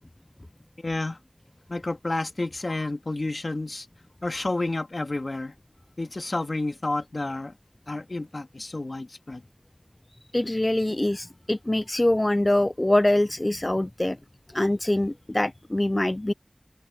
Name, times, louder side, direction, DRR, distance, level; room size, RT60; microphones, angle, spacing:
voice 1, 0.8-1.2 1.7-3.9 4.2-5.5 6.0-7.5 7.9-9.4, left 2 dB, 75° left, 2.3 m, -30 dB
voice 2, 10.3-14.2 14.5-16.3, left 1 dB, 40° left, 0.3 m, -24 dB
wide cardioid pair, 40°, 0 cm